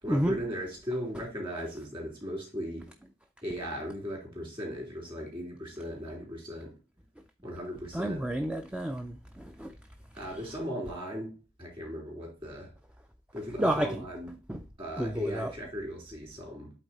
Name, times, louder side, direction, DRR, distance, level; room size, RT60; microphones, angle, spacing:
voice 1, 0.0-2.9 3.4-6.7 7.4-8.2 10.1-11.3 11.6-12.7 13.3-14.3 14.8-16.7, equal, 25° right, 3.2 m, -37 dB
voice 2, 7.9-9.7 13.6-14.0 14.5-14.6 15.0-15.5, right 1 dB, 5° right, 0.4 m, -30 dB
8.3 x 3.9 x 4.1 m
head